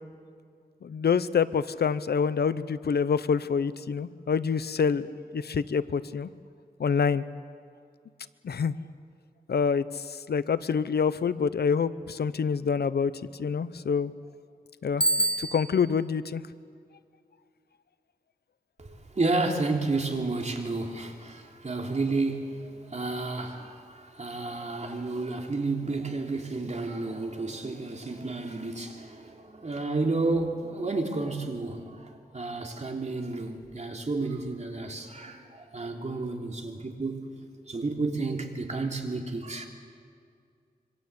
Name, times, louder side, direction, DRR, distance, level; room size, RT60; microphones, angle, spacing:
voice 1, 0.8-5.1 5.3-6.3 6.8-7.2 8.4-8.7 9.5-13.1 13.4-14.1 14.8-16.4, left 6 dB, 85° left, 15 dB, 0.8 m, -26 dB
Bicycle bell, 15.0-16.0, right 2 dB, 5° left, 1.0 m, -26 dB
voice 2, 18.8-37.3 37.7-39.7, right 3 dB, 45° right, 2 dB, 3.3 m, -31 dB
26.0 x 24.5 x 8.2 m, 2.3 s
wide cardioid pair, 90°, 16 cm